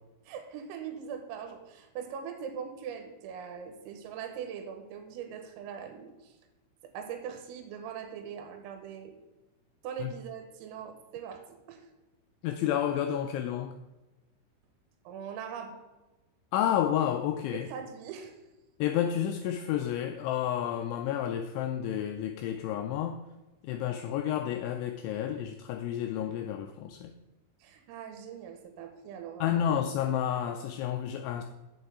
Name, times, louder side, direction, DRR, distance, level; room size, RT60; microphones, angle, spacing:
voice 1, 0.3-6.4 6.8-9.2 9.8-11.9 15.1-15.8 17.5-18.4 27.6-29.7, right 7 dB, 90° right, 6 dB, 3.7 m, -41 dB
voice 2, 12.4-13.7 16.5-17.7 18.8-23.2 23.6-27.1 29.4-31.4, left 10 dB, 85° left, 6 dB, 2.7 m, -30 dB
7.9 x 7.6 x 4.7 m, 1.1 s
omnidirectional pair, 5.9 m